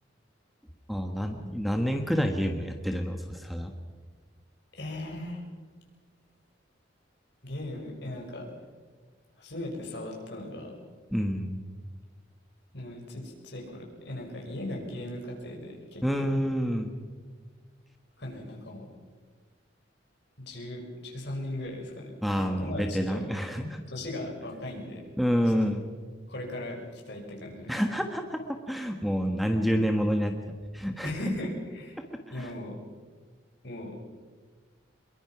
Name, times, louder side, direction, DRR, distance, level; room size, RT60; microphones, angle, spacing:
voice 1, 0.9-3.7 11.1-11.6 16.0-16.9 22.2-23.8 25.2-25.8 27.7-30.3 30.7-31.2 32.3-32.5, equal, ahead, 5 dB, 1.3 m, -28 dB
voice 2, 4.7-5.4 7.4-8.4 9.4-10.7 12.7-16.3 18.2-18.8 20.5-22.1 22.4-23.2 23.9-25.0 25.6-25.7 26.3-27.7 31.0-32.0 32.3-32.7 33.6-34.0, left 1 dB, 60° left, 0 dB, 6.1 m, -38 dB
25.0 x 22.5 x 5.9 m, 1.5 s
head